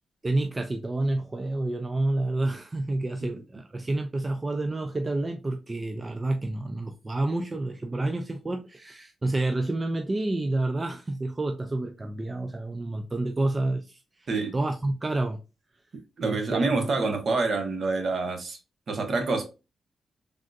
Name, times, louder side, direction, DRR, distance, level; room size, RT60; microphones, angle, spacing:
voice 1, 0.2-15.4 16.2-16.9, right 2 dB, 25° right, 0.3 m, -29 dB
voice 2, 16.2-18.6 18.9-19.5, right 3 dB, 55° right, 0.8 m, -27 dB
3.5 x 2.5 x 2.2 m
cardioid pair, 100°, 0 cm